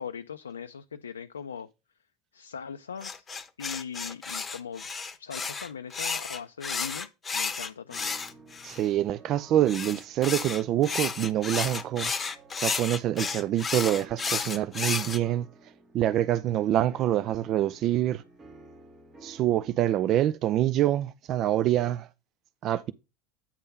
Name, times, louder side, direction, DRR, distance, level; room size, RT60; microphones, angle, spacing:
voice 1, 0.0-1.7 2.3-3.3 3.6-4.9 5.2-8.2, left 7 dB, 85° left, 0.3 m, -40 dB
sound 1, 3.0-8.9 9.7-15.2, left 5 dB, 25° left, 0.9 m, -32 dB
sound 2, 7.9-19.9, right 2 dB, 30° right, 1.6 m, -53 dB
voice 2, 8.6-12.1 12.6-15.5 15.9-18.2 19.2-22.1 22.6-22.9, right 12 dB, 50° right, 0.3 m, -26 dB
8.7 x 3.6 x 5.3 m
hypercardioid pair, 75°, 0 cm